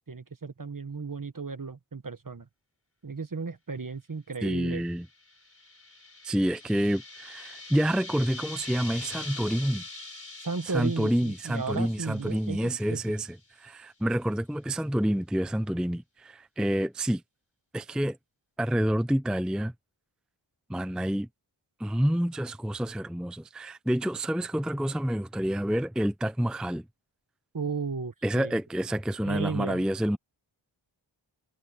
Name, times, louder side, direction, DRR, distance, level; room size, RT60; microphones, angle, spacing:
voice 1, 0.1-2.5 3.0-4.8 10.4-13.2 27.5-28.6 29.2-29.9, right 4 dB, 40° right, 1.5 m, -34 dB
voice 2, 4.4-5.1 6.2-9.8 10.7-17.2 17.7-18.2 18.6-19.7 20.7-21.3 21.8-26.9 28.2-30.2, equal, ahead, 0.5 m, -28 dB
sound 1, 5.0-13.3, left 2 dB, 25° left, 4.5 m, -44 dB
wide cardioid pair, 60°, 49 cm